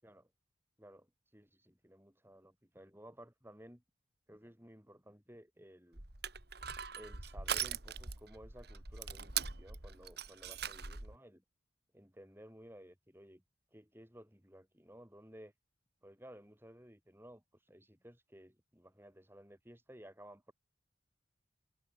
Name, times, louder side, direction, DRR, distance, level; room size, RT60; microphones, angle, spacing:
voice 1, 0.8-3.8 4.3-6.0 7.0-11.4 11.9-13.4 13.7-15.5 16.0-20.5, equal, 10° right, 6.6 m, -56 dB
Crushing, 5.9-11.2, right 8 dB, 55° right, 3.0 m, -41 dB
head